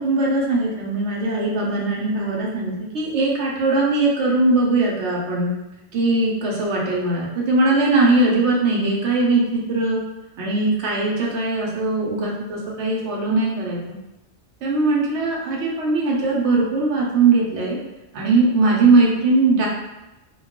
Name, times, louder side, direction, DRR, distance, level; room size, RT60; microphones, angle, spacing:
voice 1, 0.0-5.5 5.9-10.0 10.4-13.9 14.6-17.8 18.1-19.7, right 3 dB, 85° right, -3 dB, 1.0 m, -20 dB
2.3 x 2.3 x 3.5 m, 1.0 s
omnidirectional pair, 1.2 m